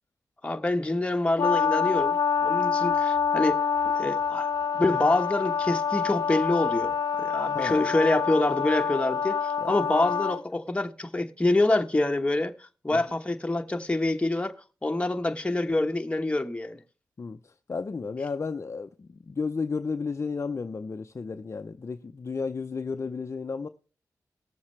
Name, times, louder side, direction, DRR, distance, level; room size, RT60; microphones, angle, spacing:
voice 1, 0.4-3.6 3.9-4.5 4.7-6.9 7.2-14.6 14.8-16.8, left 2 dB, 15° left, 1.1 m, -26 dB
Brass instrument, 1.4-10.4, left 6 dB, 80° left, 0.6 m, -26 dB
voice 2, 17.7-23.7, left 4 dB, 40° left, 0.5 m, -33 dB
19.5 x 7.2 x 3.2 m
cardioid pair, 60°, 7 cm